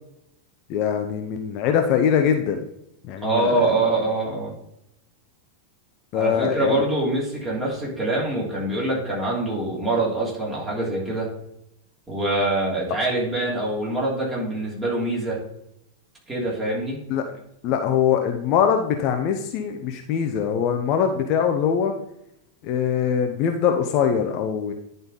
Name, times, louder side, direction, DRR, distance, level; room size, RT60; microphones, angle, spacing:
voice 1, 0.7-2.6 3.0-3.7 6.1-6.8 17.1-17.2 17.6-21.9 22.6-24.7, left 8 dB, 40° left, 5 dB, 0.7 m, -22 dB
voice 2, 3.2-4.5 6.1-11.3 12.1-15.4 16.3-17.0, right 2 dB, 15° right, -4 dB, 3.2 m, -24 dB
10.5 x 4.0 x 4.0 m, 0.78 s
figure-of-eight pair, 90°, 0 cm